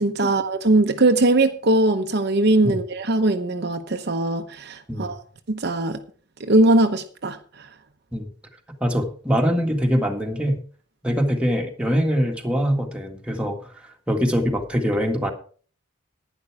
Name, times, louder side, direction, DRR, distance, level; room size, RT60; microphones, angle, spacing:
voice 1, 0.0-5.2 5.5-6.0 6.4-7.7, right 2 dB, 55° right, 0.9 m, -20 dB
voice 2, 8.8-10.6 11.0-13.6 14.1-15.3, equal, 5° right, 1.8 m, -23 dB
11.0 x 10.0 x 4.7 m
head